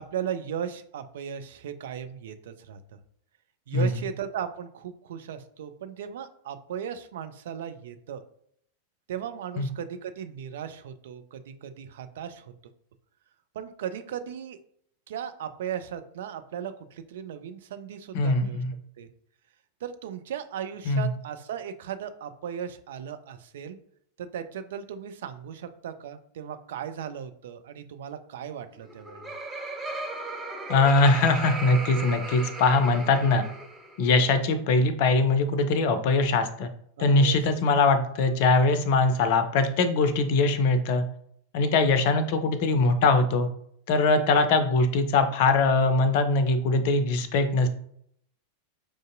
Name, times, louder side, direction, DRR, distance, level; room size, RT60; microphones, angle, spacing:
voice 1, 0.0-2.8 3.7-8.2 9.1-12.5 13.5-14.6 15.1-18.6 19.0-19.1 19.8-23.8 24.2-29.3 37.0-37.6, right 8 dB, 60° right, 9 dB, 0.3 m, -37 dB
voice 2, 18.1-18.7 20.9-21.1 30.7-33.4 34.0-36.7 37.0-41.0 41.5-43.5 43.9-47.7, left 3 dB, 50° left, 9 dB, 0.4 m, -22 dB
Laughter, 28.8-34.0, right 2 dB, 15° right, 1.1 m, -36 dB
4.8 x 2.5 x 2.5 m, 0.68 s
figure-of-eight pair, 90°, 0 cm